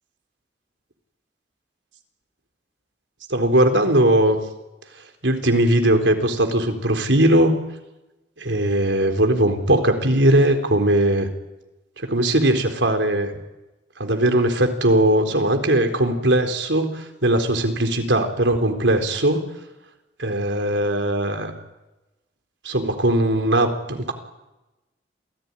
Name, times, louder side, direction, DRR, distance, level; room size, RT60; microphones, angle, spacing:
voice 1, 3.3-4.4 5.2-7.6 8.4-11.3 12.0-13.3 14.0-19.5 20.2-21.5 22.6-24.1, right 1 dB, 85° right, 6 dB, 4.1 m, -19 dB
28.0 x 18.5 x 9.9 m, 1.0 s
head